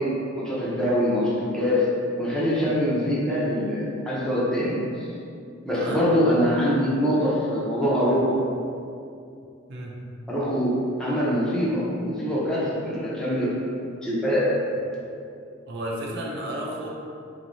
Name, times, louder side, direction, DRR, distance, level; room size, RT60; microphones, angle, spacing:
voice 1, 0.0-1.9 2.2-5.1 5.6-8.4 10.3-13.5 14.0-14.5, equal, 5° left, -8 dB, 0.6 m, -24 dB
voice 2, 15.7-16.9, right 1 dB, 55° right, -3 dB, 0.5 m, -32 dB
3.8 x 3.1 x 2.6 m, 2.5 s
head